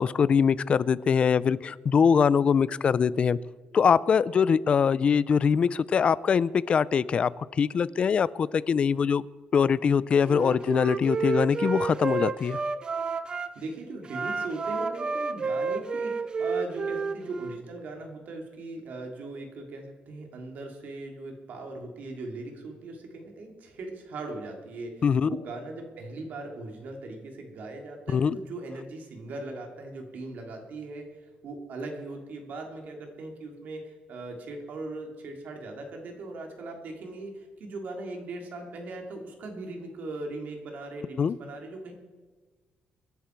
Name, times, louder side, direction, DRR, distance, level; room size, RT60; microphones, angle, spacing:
voice 1, 0.0-3.4 3.7-9.2 9.5-12.6 25.0-25.3 28.1-28.4 41.2-41.4, left 6 dB, 35° left, 19 dB, 0.4 m, -23 dB
Wind instrument woodwind instrument, 10.2-13.5 14.0-17.6, right 4 dB, 25° right, 0.5 m, -30 dB
voice 2, 13.5-41.9, right 2 dB, 60° right, 2 dB, 3.0 m, -39 dB
26.0 x 10.5 x 4.6 m, 1.3 s
cardioid pair, 175°, 3 cm